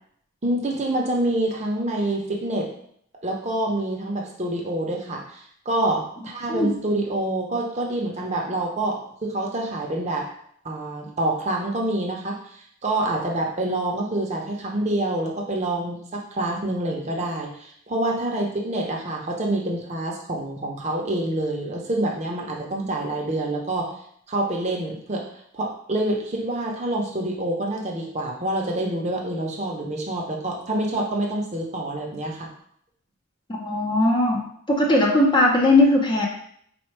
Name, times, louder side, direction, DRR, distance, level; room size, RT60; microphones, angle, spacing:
voice 1, 0.4-2.7 3.2-10.3 10.6-12.4 12.8-23.9 24.3-25.2 25.5-32.5, right 1 dB, 35° right, 0 dB, 0.7 m, -26 dB
voice 2, 33.6-36.3, left 2 dB, 20° left, -1 dB, 0.6 m, -19 dB
4.2 x 2.2 x 4.5 m, 0.66 s
head